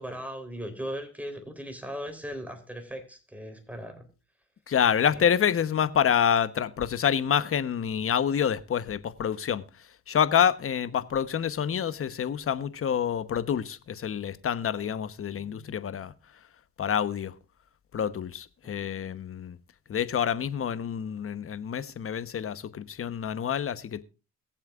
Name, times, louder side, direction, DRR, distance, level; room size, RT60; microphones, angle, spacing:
voice 1, 0.0-4.1 5.0-5.2 18.6-18.8, equal, 5° right, 3.8 m, -38 dB
voice 2, 4.7-16.1 16.8-17.3 17.9-19.6 19.9-24.0, left 8 dB, 45° left, 1.1 m, -27 dB
22.0 x 7.4 x 2.5 m
cardioid pair, 90°, 30 cm